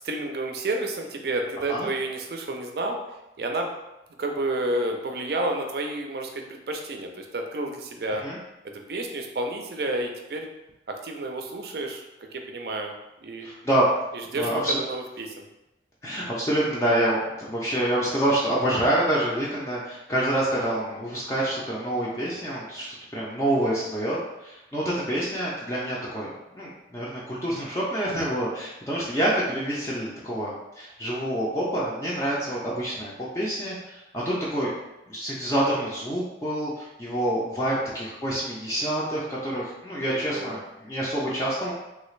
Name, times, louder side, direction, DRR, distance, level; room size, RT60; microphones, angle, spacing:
voice 1, 0.0-3.0 3.4-3.7 4.2-8.2 8.6-10.5 10.9-12.1 12.3-12.9 13.2-13.5 14.1-15.4 20.6-20.8 37.7-37.9 40.1-40.6, right 2 dB, 60° right, 3 dB, 0.4 m, -30 dB
voice 2, 13.4-13.9 14.3-14.8 16.0-34.7 35.1-41.7, right 1 dB, 15° left, -6 dB, 0.4 m, -27 dB
3.2 x 2.4 x 3.1 m, 0.95 s
head